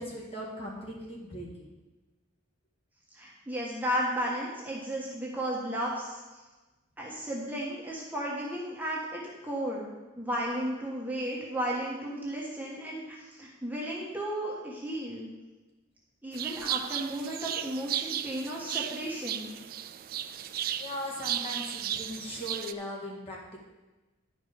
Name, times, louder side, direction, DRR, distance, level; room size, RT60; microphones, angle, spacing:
voice 1, 0.0-1.7 20.8-23.6, equal, 30° left, -3 dB, 1.8 m, -39 dB
voice 2, 3.1-6.2 7.0-9.9 10.1-15.3 16.2-19.5, equal, 10° right, -4 dB, 1.3 m, -34 dB
sound 1, 16.3-22.7, right 10 dB, 45° right, 0.3 m, -35 dB
11.0 x 5.2 x 5.1 m, 1.2 s
head